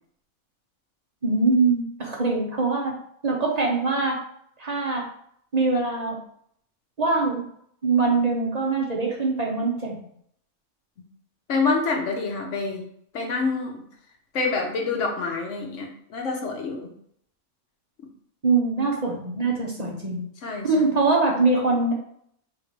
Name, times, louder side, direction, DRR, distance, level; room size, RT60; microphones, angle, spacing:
voice 1, 1.2-2.9 3.2-4.2 4.6-5.1 5.5-6.2 7.0-7.4 7.8-10.0 18.4-20.2 20.6-21.9, right 3 dB, 40° right, -2 dB, 0.7 m, -23 dB
voice 2, 11.5-12.8 13.1-13.8 14.3-16.9 20.4-20.9, left 4 dB, 60° left, 1 dB, 1.2 m, -27 dB
3.6 x 2.7 x 4.6 m, 0.68 s
omnidirectional pair, 1.5 m